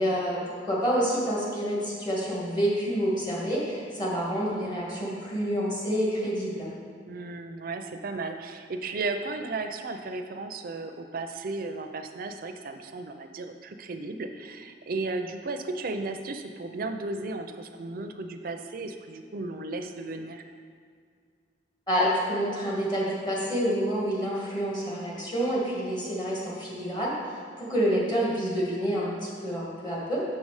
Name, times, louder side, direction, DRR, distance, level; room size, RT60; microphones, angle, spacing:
voice 1, 0.0-6.7 21.9-30.4, equal, 25° left, -5 dB, 1.7 m, -28 dB
voice 2, 7.1-20.4, right 3 dB, 55° right, 6 dB, 0.5 m, -35 dB
6.6 x 5.5 x 4.8 m, 2.1 s
head